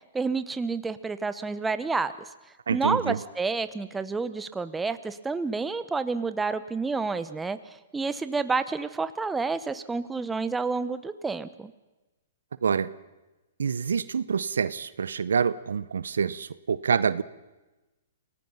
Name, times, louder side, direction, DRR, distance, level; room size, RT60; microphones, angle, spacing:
voice 1, 0.1-2.1 2.7-7.6 7.9-11.7, right 4 dB, 10° right, 12 dB, 1.1 m, -29 dB
voice 2, 2.7-3.2 12.6-12.9 13.6-17.2, right 6 dB, 80° right, 17 dB, 0.8 m, -26 dB
28.0 x 18.5 x 5.7 m, 1.1 s
hypercardioid pair, 120°, 0 cm